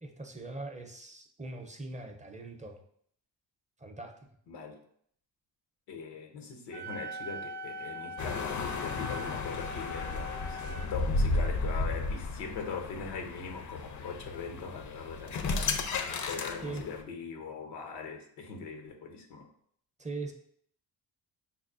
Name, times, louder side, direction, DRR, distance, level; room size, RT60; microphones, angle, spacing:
voice 1, 0.0-2.8 3.8-4.2 16.6-16.9 20.0-20.3, right 3 dB, 20° right, 4 dB, 0.5 m, -41 dB
voice 2, 4.5-4.8 5.9-15.7 16.3-19.5, left 5 dB, 90° left, 4 dB, 0.7 m, -41 dB
Wind instrument woodwind instrument, 6.7-10.9, equal, 85° right, 0.6 m, -41 dB
sound 1, 8.2-17.0, left 3 dB, 45° left, 0.5 m, -34 dB
5.5 x 2.1 x 2.4 m, 0.65 s
supercardioid pair, 55°, 41 cm